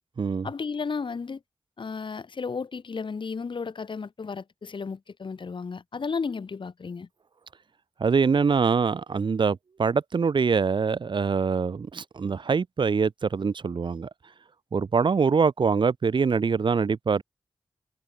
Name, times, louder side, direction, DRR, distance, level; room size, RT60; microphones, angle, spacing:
voice 1, 0.4-1.4 1.8-7.1, left 5 dB, 65° left, 6.4 m, -33 dB
voice 2, 8.0-14.1 14.7-17.2, right 5 dB, 60° right, 1.2 m, -24 dB
cardioid pair, 60°, 9 cm